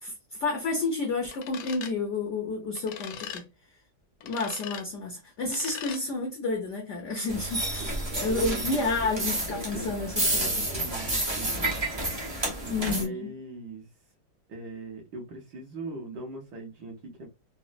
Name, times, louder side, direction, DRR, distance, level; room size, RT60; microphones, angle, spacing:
voice 1, 0.0-3.4 4.2-10.6 12.7-13.3, left 3 dB, 65° left, 0.7 m, -30 dB
sound 1, 1.3-1.9 2.8-3.4 4.2-4.8 5.5-6.0, left 9 dB, 80° left, 1.3 m, -40 dB
sound 2, 7.3-13.0, right 1 dB, 40° right, 0.3 m, -30 dB
voice 2, 8.3-9.9 10.2-11.6 12.6-13.9 14.5-17.3, right 2 dB, 65° right, 1.3 m, -40 dB
4.0 x 2.0 x 2.4 m
omnidirectional pair, 2.0 m